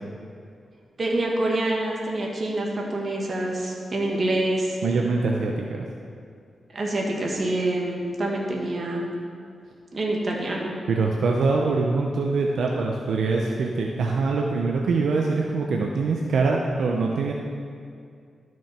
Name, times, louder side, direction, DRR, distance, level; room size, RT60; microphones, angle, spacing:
voice 1, 1.0-4.8 6.7-9.1 9.9-10.7, right 1 dB, 45° right, -1 dB, 1.8 m, -26 dB
voice 2, 4.8-5.9 10.9-17.3, right 3 dB, 80° right, 0 dB, 0.7 m, -24 dB
13.0 x 6.2 x 4.4 m, 2.3 s
cardioid pair, 85°, 0 cm